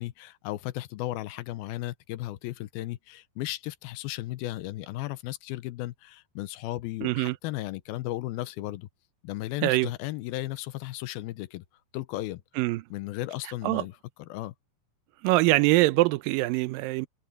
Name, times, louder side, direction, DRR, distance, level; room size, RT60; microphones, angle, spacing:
voice 1, 0.0-8.9 9.2-11.7 11.9-12.4 12.9-14.5, left 16 dB, 85° left, 2.6 m, -35 dB
voice 2, 7.0-7.4 9.6-9.9 12.6-12.8 13.6-13.8 15.2-17.1, right 19 dB, 80° right, 2.3 m, -23 dB
omnidirectional pair, 4.2 m